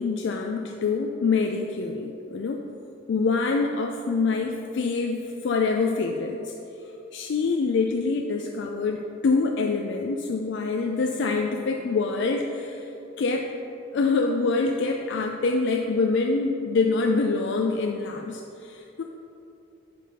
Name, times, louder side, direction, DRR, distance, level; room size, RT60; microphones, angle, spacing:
voice 1, 0.0-2.6 3.1-6.5 7.1-12.9 13.2-13.5 13.9-19.0, left 4 dB, 65° left, 2 dB, 0.4 m, -25 dB
10.0 x 3.5 x 5.6 m, 2.9 s
head